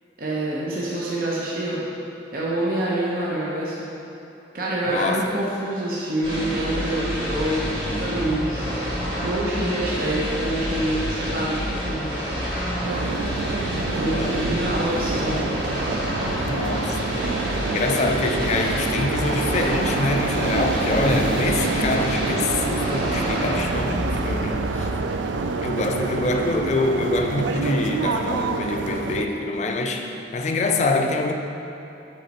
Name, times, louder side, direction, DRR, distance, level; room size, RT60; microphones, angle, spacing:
voice 1, 0.2-1.8 2.3-3.9 4.5-8.6 9.2-12.3 13.9-15.4, right 1 dB, 50° right, -6 dB, 0.8 m, -26 dB
voice 2, 4.9-5.3 13.8-14.4 16.5-24.9 25.6-31.3, left 2 dB, 40° left, 4 dB, 0.4 m, -25 dB
sound 1, 6.2-25.2, equal, 25° right, 1.5 m, -28 dB
sound 2, 12.8-29.3, right 4 dB, 80° right, 0.4 m, -27 dB
6.6 x 4.2 x 4.1 m, 3.0 s
head